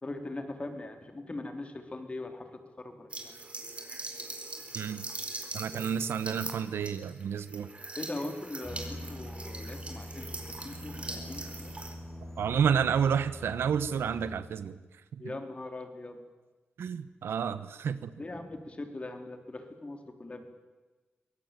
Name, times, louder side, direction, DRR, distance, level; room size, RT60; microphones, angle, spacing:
voice 1, 0.0-2.4 2.8-3.3 8.0-10.3 10.6-11.7 15.2-16.2 18.2-20.5, left 2 dB, 30° left, 6 dB, 3.6 m, -40 dB
sound 1, 3.1-11.9, right 2 dB, 30° right, 4.4 m, -42 dB
voice 2, 4.7-5.0 5.5-7.7 12.4-14.8 15.1-15.3 16.8-18.1, right 7 dB, 85° right, 14 dB, 1.1 m, -30 dB
sound 2, 8.6-14.4, left 1 dB, 10° left, 6.0 m, -43 dB
23.5 x 17.5 x 9.1 m, 1.3 s
cardioid pair, 75°, 4 cm